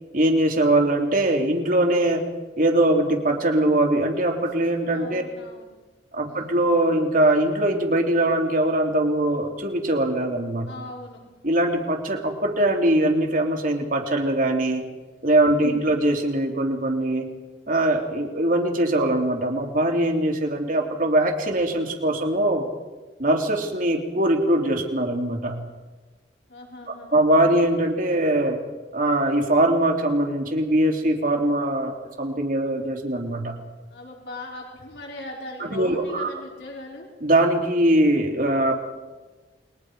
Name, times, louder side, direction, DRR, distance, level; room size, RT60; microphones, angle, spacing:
voice 1, 0.1-2.2 2.6-5.2 6.1-10.7 11.4-14.8 15.2-17.3 17.7-22.6 23.2-25.6 26.9-28.6 28.9-33.5 35.6-36.3 37.2-38.7, right 1 dB, 50° right, 3 dB, 3.1 m, -22 dB
voice 2, 4.9-5.7 6.3-6.5 10.7-11.2 15.7-15.9 26.5-27.1 33.9-37.1, left 2 dB, 75° left, -1 dB, 4.5 m, -39 dB
29.5 x 22.0 x 5.0 m, 1.2 s
head